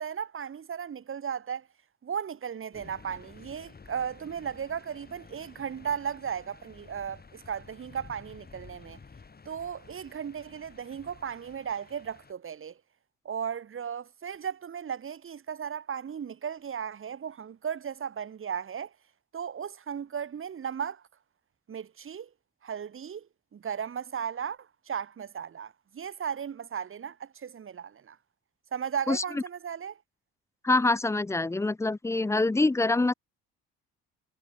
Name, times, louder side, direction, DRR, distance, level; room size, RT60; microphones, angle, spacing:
voice 1, 0.0-1.7 2.0-9.0 9.5-12.8 13.3-18.9 19.3-21.0 21.7-22.3 22.6-23.3 23.5-28.2 28.7-30.0, right 7 dB, 40° right, 1.9 m, -36 dB
sound 1, 2.7-12.3, left 4 dB, 30° left, 6.0 m, -52 dB
voice 2, 29.1-29.4 30.6-33.1, left 2 dB, 10° left, 0.5 m, -25 dB
supercardioid pair, 65°, 31 cm